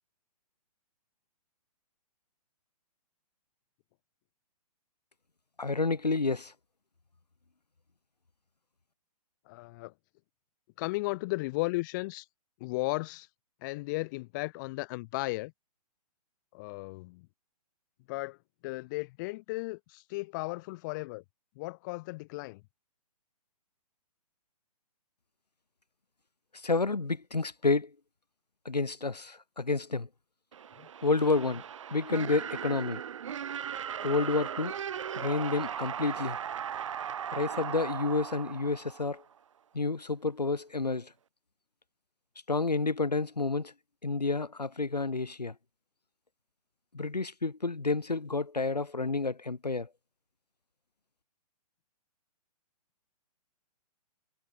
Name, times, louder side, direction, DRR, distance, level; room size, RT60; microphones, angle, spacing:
voice 1, 5.6-6.5 26.5-27.9 28.6-30.1 31.0-31.6 31.9-33.0 34.0-34.7 35.1-36.4 37.3-39.2 39.7-41.1 42.5-43.7 44.0-45.5 46.9-49.9, left 3 dB, 80° left, 1.0 m, -30 dB
voice 2, 9.5-9.9 10.8-12.3 12.6-13.3 13.6-15.5 16.5-17.3 18.1-18.4 18.6-21.2 21.6-22.6 30.8-30.9, left 23 dB, 30° left, 2.1 m, -35 dB
sound 1, 30.5-39.4, right 8 dB, 50° right, 1.4 m, -38 dB
figure-of-eight pair, 125°, 20 cm